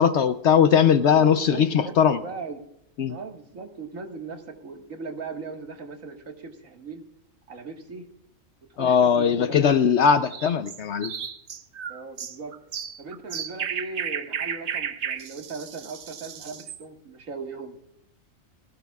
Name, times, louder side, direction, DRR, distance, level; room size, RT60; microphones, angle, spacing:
voice 1, 0.0-2.2 3.0-3.2 8.8-11.1, left 7 dB, 65° left, 11 dB, 0.9 m, -20 dB
voice 2, 1.0-2.6 3.1-7.0 7.5-8.0 8.7-9.8 11.9-12.5 13.0-17.8, right 4 dB, 85° right, 3 dB, 2.1 m, -38 dB
sound 1, 10.2-16.8, right 7 dB, 60° right, 1.1 m, -34 dB
20.0 x 16.5 x 2.3 m, 0.78 s
omnidirectional pair, 1.4 m